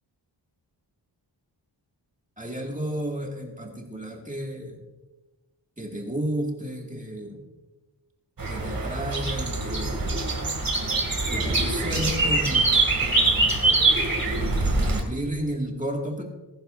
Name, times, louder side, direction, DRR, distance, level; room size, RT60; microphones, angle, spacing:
voice 1, 2.4-4.8 5.8-7.5 8.5-10.1 11.2-13.7 14.3-16.2, right 1 dB, 15° right, 0 dB, 2.1 m, -32 dB
sound 1, 8.4-15.0, right 2 dB, 50° right, 2.5 m, -24 dB
20.0 x 11.0 x 2.6 m, 1.2 s
wide cardioid pair, 135°, 44 cm